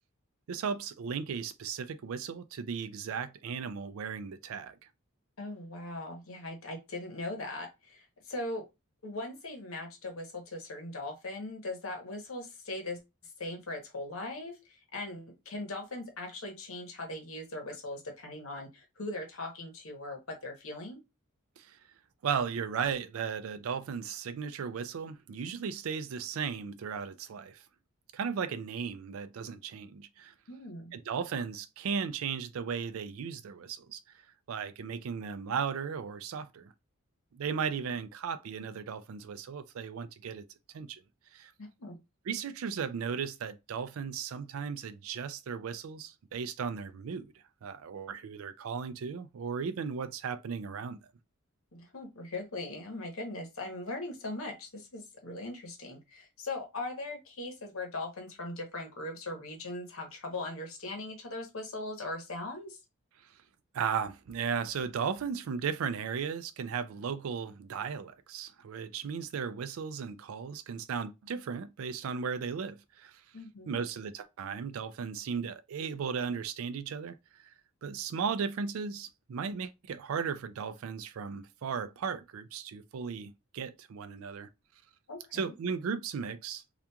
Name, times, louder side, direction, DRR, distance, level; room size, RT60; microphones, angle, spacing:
voice 1, 0.5-4.8 21.6-21.8 22.2-27.6 28.1-30.3 30.9-34.0 34.5-36.7 37.3-40.4 40.7-41.0 41.3-41.5 42.3-47.3 47.6-51.0 63.7-73.2 73.7-77.5 77.8-84.5 85.3-86.7, right 6 dB, 85° right, 0.4 m, -36 dB
voice 2, 5.4-8.6 9.0-13.0 13.4-21.0 30.5-30.9 41.6-42.0 51.7-62.8 73.3-73.8 85.1-85.5, left 2 dB, 85° left, 0.9 m, -40 dB
2.8 x 2.4 x 2.2 m
head